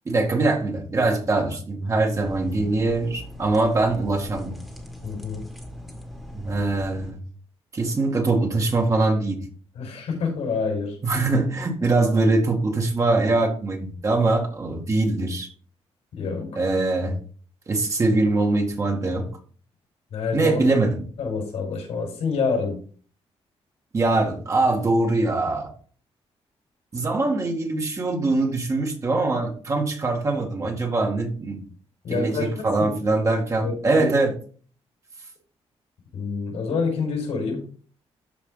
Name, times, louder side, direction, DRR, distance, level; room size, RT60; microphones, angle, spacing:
voice 1, 0.1-4.6 6.3-7.2 7.7-9.5 11.0-15.5 16.5-17.2 17.7-19.3 20.3-20.9 23.9-25.7 26.9-31.6 32.1-34.3, right 2 dB, 30° right, 2 dB, 1.9 m, -22 dB
sound 1, 2.1-7.1, left 1 dB, ahead, 1.8 m, -40 dB
voice 2, 5.0-5.5 9.7-11.0 16.1-16.6 20.1-20.6 21.2-22.8 32.0-33.3 33.6-34.1 36.1-37.7, left 4 dB, 90° left, 1 dB, 5.4 m, -27 dB
13.0 x 4.8 x 3.9 m, 0.43 s
wide cardioid pair, 155°, 11 cm